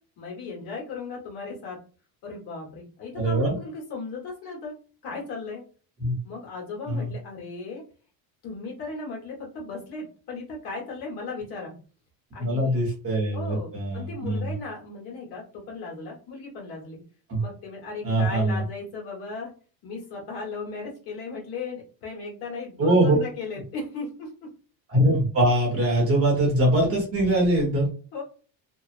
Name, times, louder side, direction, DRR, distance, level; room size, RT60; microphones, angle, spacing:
voice 1, 0.2-1.8 2.2-4.7 5.0-5.6 6.2-7.8 8.4-11.8 12.3-12.8 13.3-17.0 17.4-19.5 19.8-24.5 28.1-28.2, left 3 dB, 50° left, -2 dB, 1.2 m, -36 dB
voice 2, 3.1-3.6 6.0-6.1 6.9-7.1 12.4-14.5 17.3-17.4 18.0-18.6 22.8-23.2 24.9-27.9, right 1 dB, 30° right, -2 dB, 0.8 m, -22 dB
2.8 x 2.0 x 2.4 m, 0.38 s
cardioid pair, 170°, 48 cm